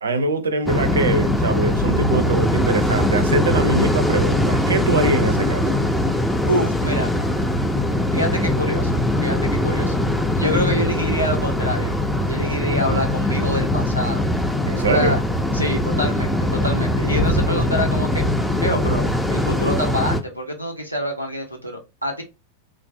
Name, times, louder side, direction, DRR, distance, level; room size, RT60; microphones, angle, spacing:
voice 1, 0.0-5.8 14.6-15.2, right 3 dB, 70° right, 0.5 m, -23 dB
sound 1, 0.7-20.2, left 1 dB, 5° left, 0.4 m, -21 dB
voice 2, 6.5-7.1 8.1-9.9 10.3-11.9 12.3-14.3 14.8-15.2 15.5-18.2 18.6-22.2, equal, 90° left, 0.8 m, -26 dB
3.2 x 2.5 x 2.5 m
figure-of-eight pair, 90°, 0 cm